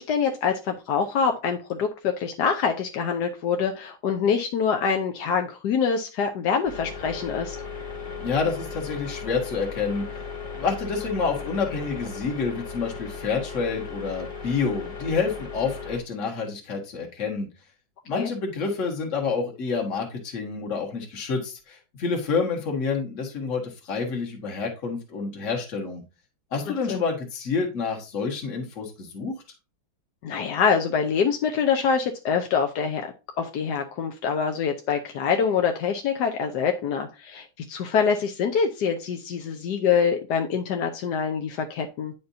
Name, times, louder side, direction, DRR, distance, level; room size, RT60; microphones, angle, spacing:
voice 1, 0.0-7.6 18.2-18.3 26.7-27.0 30.2-33.1 33.4-42.1, left 6 dB, 65° left, 4 dB, 1.1 m, -25 dB
sound 1, 6.6-16.0, left 5 dB, 15° left, 1.9 m, -37 dB
voice 2, 8.2-10.1 10.5-17.5 18.1-26.0 26.5-29.3, left 5 dB, 40° left, 1 dB, 1.8 m, -28 dB
9.8 x 5.2 x 2.7 m, 0.29 s
omnidirectional pair, 2.3 m